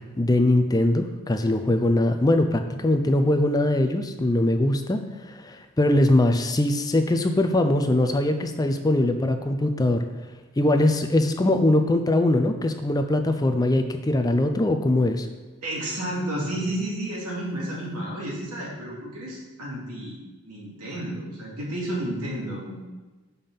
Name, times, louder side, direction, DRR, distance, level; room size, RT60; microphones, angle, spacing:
voice 1, 0.2-10.0 10.6-15.3, left 1 dB, 15° left, 6 dB, 0.4 m, -22 dB
voice 2, 15.6-20.2 20.5-22.8, right 1 dB, 90° right, -4 dB, 2.6 m, -31 dB
6.9 x 5.4 x 5.7 m, 1.2 s
head